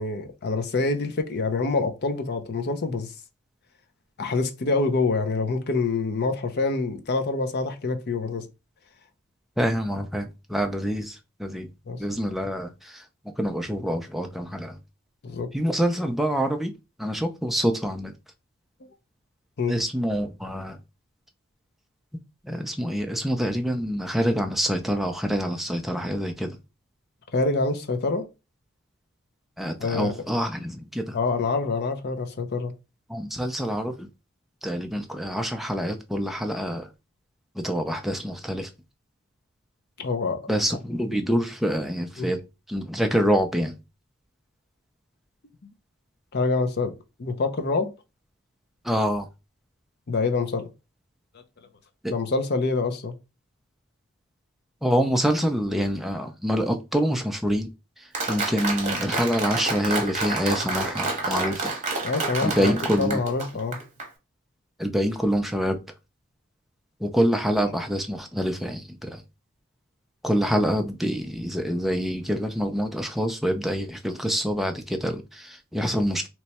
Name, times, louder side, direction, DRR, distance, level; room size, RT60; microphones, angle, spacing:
voice 1, 0.0-3.1 4.2-8.4 11.9-12.0 15.2-15.5 19.6-19.7 27.3-28.3 29.8-30.2 31.1-32.7 40.0-40.4 42.2-42.3 46.3-46.9 47.2-47.9 50.1-50.7 52.1-53.1 62.0-63.8, left 3 dB, 50° left, 0.6 m, -26 dB
voice 2, 9.6-11.7 12.0-14.8 15.5-16.7 17.0-18.1 19.7-20.8 22.4-26.6 29.6-31.2 33.1-34.1 34.6-36.9 37.5-38.7 40.5-42.4 42.7-43.8 48.8-49.3 52.0-52.1 54.8-57.7 58.0-61.7 62.4-63.2 64.8-65.8 67.0-69.2 70.2-76.3, equal, ahead, 0.4 m, -26 dB
Applause, 58.1-64.1, right 3 dB, 30° right, 1.0 m, -29 dB
3.0 x 2.2 x 4.1 m
head